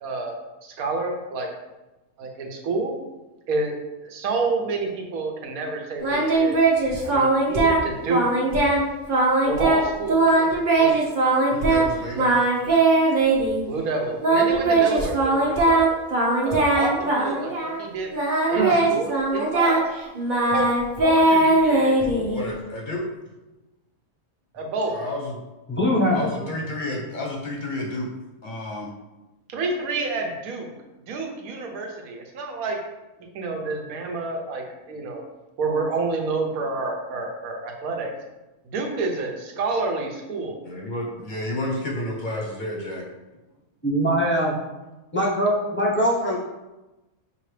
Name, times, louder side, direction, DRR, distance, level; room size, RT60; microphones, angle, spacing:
voice 1, 0.0-1.5 2.2-2.9 3.5-3.7 4.0-6.6 7.0-8.3 9.5-11.0 12.1-12.7 13.6-16.0 16.4-16.9 17.2-18.1 18.5-19.8 20.5-20.7 21.0-22.3 24.5-24.9 29.5-30.7 31.1-32.8 33.3-35.2 35.6-38.1 38.6-40.6, right 3 dB, 80° right, 2 dB, 1.2 m, -29 dB
Singing, 6.0-7.8 8.1-8.8 9.1-9.8 10.1-11.9 12.2-13.6 14.2-17.8 18.1-22.5, right 2 dB, 40° right, 0.8 m, -20 dB
voice 2, 11.4-12.3 22.3-23.0 24.8-25.3 26.1-28.1 28.4-28.9 40.6-43.0, left 1 dB, 40° left, -2 dB, 0.8 m, -30 dB
voice 3, 25.7-26.2 43.8-44.5 45.1-46.4, equal, 15° left, -4 dB, 0.4 m, -22 dB
5.7 x 2.8 x 3.2 m, 1.1 s
omnidirectional pair, 1.5 m